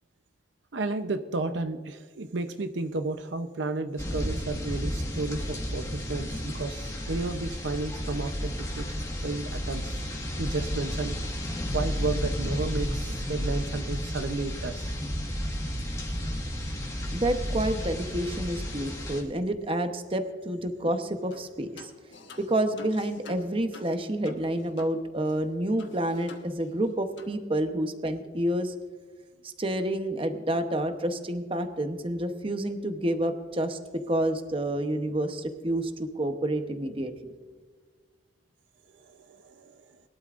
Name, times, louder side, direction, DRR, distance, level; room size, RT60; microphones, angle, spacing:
voice 1, 0.7-8.9 9.2-10.0 10.4-11.2 11.7-14.9 38.9-40.0, right 3 dB, 75° right, 8 dB, 0.7 m, -32 dB
sound 1, 4.0-19.2, equal, 20° left, 1.6 m, -32 dB
voice 2, 17.1-21.9 22.4-28.7 29.4-33.8 34.1-37.1, right 1 dB, 30° right, 7 dB, 0.9 m, -29 dB
sound 2, 21.3-21.5 21.8-25.0 25.3-25.4 25.8-26.9 27.2-27.4, left 3 dB, 75° left, 1.2 m, -49 dB
21.5 x 12.0 x 2.5 m, 1.5 s
head